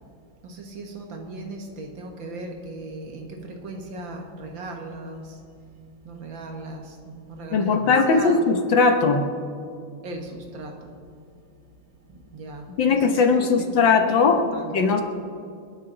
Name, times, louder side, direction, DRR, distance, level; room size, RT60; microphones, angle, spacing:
voice 1, 0.4-5.4 6.0-8.5 10.0-11.0 12.0-14.9, right 2 dB, 65° right, 3 dB, 2.2 m, -37 dB
voice 2, 7.5-9.3 12.8-14.4 14.7-15.0, left 4 dB, 65° left, 5 dB, 1.8 m, -19 dB
29.0 x 10.5 x 4.0 m, 2.3 s
omnidirectional pair, 2.2 m